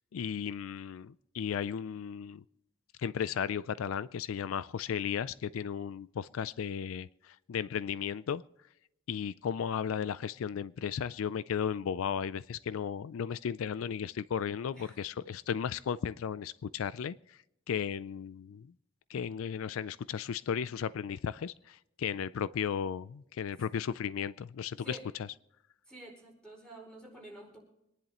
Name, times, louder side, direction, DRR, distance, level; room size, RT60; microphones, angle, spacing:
voice 1, 0.1-2.4 3.0-8.4 9.1-17.4 17.7-18.7 19.1-25.0, left 7 dB, 80° left, 0.4 m, -35 dB
voice 2, 14.7-15.0 24.8-25.0 25.9-27.6, right 1 dB, 5° left, 4.9 m, -49 dB
25.5 x 10.5 x 3.0 m
head